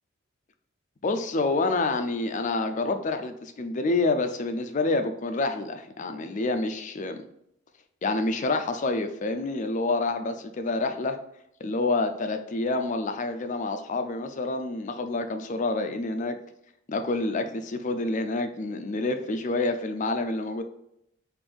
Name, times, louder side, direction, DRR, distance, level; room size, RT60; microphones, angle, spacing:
voice 1, 1.0-7.2 8.0-11.2 11.6-16.4 16.9-20.6, left 2 dB, 35° left, 7 dB, 0.4 m, -28 dB
5.2 x 2.6 x 3.5 m, 0.76 s
head